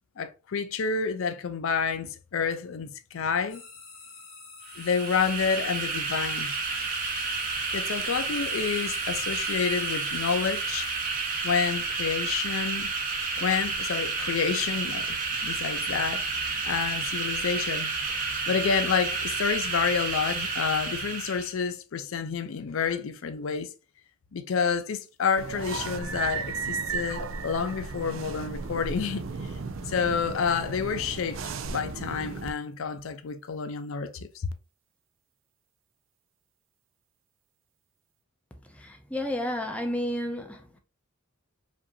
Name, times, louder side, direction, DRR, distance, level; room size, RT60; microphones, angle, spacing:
voice 1, 0.2-3.6 4.8-6.5 7.7-10.9 11.4-12.9 13.4-17.9 18.5-23.7 24.3-29.3 29.8-34.3, left 6 dB, 70° left, 0.4 m, -29 dB
sound 1, 3.5-12.4, left 4 dB, 45° left, 2.1 m, -49 dB
sound 2, 4.7-21.5, right 4 dB, 40° right, 0.8 m, -30 dB
sound 3, 25.4-32.5, right 5 dB, 70° right, 0.4 m, -35 dB
voice 2, 38.8-40.6, left 1 dB, 5° left, 0.6 m, -31 dB
5.1 x 2.6 x 2.6 m
head